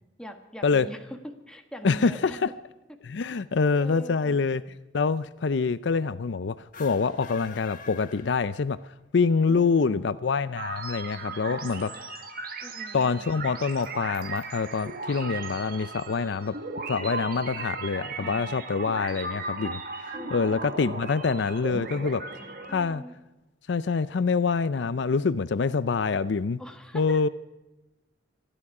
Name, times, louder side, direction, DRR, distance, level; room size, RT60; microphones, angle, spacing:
voice 1, 0.2-2.4 3.8-4.4 9.5-10.1 11.3-12.0 12.6-13.5 18.2-18.5 20.1-20.7 22.0-22.1 22.7-23.1 26.6-27.3, equal, 5° left, 3 dB, 1.5 m, -42 dB
voice 2, 1.8-2.5 3.0-4.6 4.9-8.8 9.1-12.1 12.9-16.5 16.9-22.2 22.7-23.0 23.7-26.6 26.9-27.3, left 5 dB, 65° left, 15 dB, 0.5 m, -26 dB
sound 1, 6.6-9.0, left 6 dB, 45° left, 1.3 m, -46 dB
sound 2, 10.6-22.8, right 3 dB, 50° right, 1.5 m, -37 dB
26.5 x 11.0 x 4.9 m, 1.0 s
head